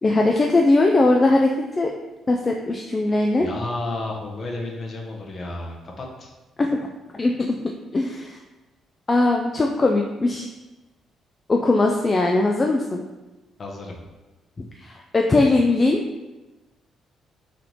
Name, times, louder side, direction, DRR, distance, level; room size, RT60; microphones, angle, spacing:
voice 1, 0.0-1.5 1.8-1.9 2.3-3.5 6.6-6.7 7.1-7.6 7.9-8.4 9.1-10.5 11.5-13.0 14.8-16.0, left 2 dB, 30° left, 1 dB, 0.3 m, -20 dB
voice 2, 3.4-6.3 13.6-14.0, left 2 dB, 45° left, 0 dB, 0.8 m, -32 dB
3.3 x 2.9 x 3.9 m, 1.1 s
cardioid pair, 90°, 0 cm